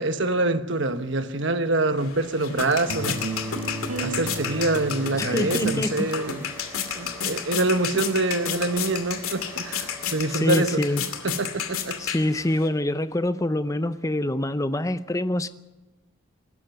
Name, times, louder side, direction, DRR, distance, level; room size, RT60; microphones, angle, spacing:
voice 1, 0.0-3.2 4.0-6.4 6.9-10.8 11.2-12.0, right 2 dB, 55° right, 1.2 m, -25 dB
sound 1, 2.0-12.7, left 7 dB, 80° left, 2.5 m, -32 dB
sound 2, 2.7-10.8, equal, 10° right, 3.3 m, -44 dB
sound 3, 2.9-5.7, right 2 dB, 75° right, 2.1 m, -32 dB
voice 2, 5.2-6.1 10.3-11.0 12.0-15.5, left 1 dB, 15° left, 0.6 m, -25 dB
22.5 x 13.5 x 9.3 m
head